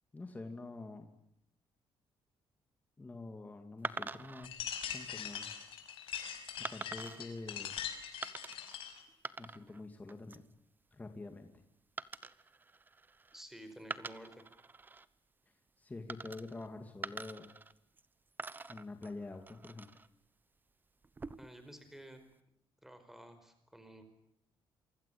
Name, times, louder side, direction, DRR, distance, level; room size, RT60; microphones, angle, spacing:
voice 1, 0.1-1.1 3.0-4.6 4.9-5.5 6.7-7.7 9.4-10.4 10.9-11.5 15.8-17.6 18.7-20.0, left 3 dB, 15° left, 5 dB, 2.4 m, -46 dB
sound 1, 3.8-4.5 5.2-5.5 6.6-7.2 8.2-8.8 9.1-9.8 10.1-10.5 12.0-13.4 13.8-15.1 16.1-16.7 17.0-18.1 18.4-20.1 21.0-21.6, right 4 dB, 20° right, 1.0 m, -45 dB
sound 2, 4.4-9.0, left 9 dB, 80° left, 5.6 m, -42 dB
voice 2, 13.3-14.4 21.4-22.2 22.8-24.0, right 1 dB, 5° right, 9 dB, 4.9 m, -52 dB
27.5 x 25.0 x 8.6 m, 0.76 s
cardioid pair, 150°, 9 cm